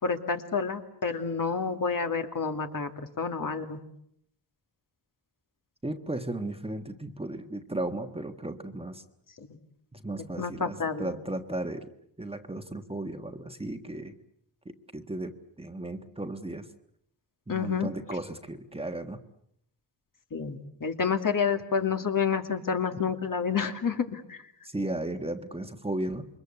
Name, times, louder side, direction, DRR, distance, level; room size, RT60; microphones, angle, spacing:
voice 1, 0.0-2.9 3.2-3.8 9.4-9.6 10.4-11.1 17.5-17.9 20.3-24.4, left 6 dB, 50° left, 6 dB, 2.6 m, -29 dB
voice 2, 5.8-9.0 9.9-11.9 12.2-14.1 14.6-16.7 17.5-19.2 24.6-26.3, right 1 dB, 15° right, 7 dB, 1.5 m, -35 dB
28.0 x 23.5 x 8.2 m, 0.74 s
wide cardioid pair, 110°, 42 cm